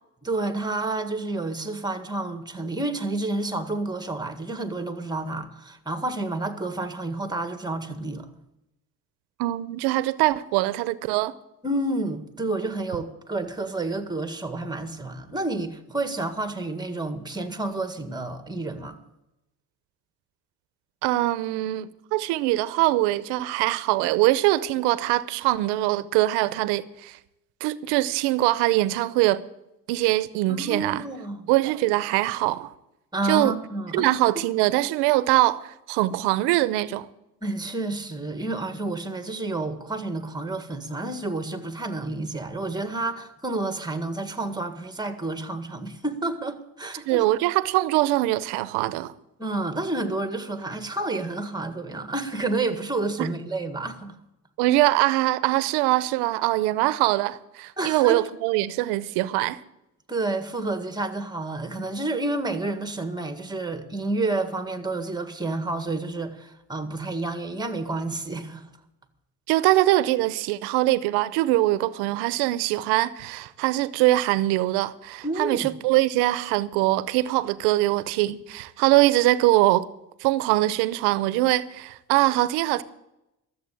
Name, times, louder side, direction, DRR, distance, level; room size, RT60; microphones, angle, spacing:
voice 1, 0.2-8.3 11.6-19.0 30.5-31.5 33.1-34.1 37.4-47.3 49.4-54.2 57.8-58.2 60.1-68.6 75.2-75.7, right 2 dB, 10° right, 1.8 m, -30 dB
voice 2, 9.4-11.3 21.0-27.2 27.6-29.4 29.9-31.0 31.5-32.7 33.2-33.5 33.9-37.1 47.1-49.1 53.2-53.4 54.6-59.6 69.5-79.9 80.2-82.8, right 17 dB, 90° right, 0.7 m, -23 dB
13.5 x 7.8 x 8.4 m
supercardioid pair, 75°, 39 cm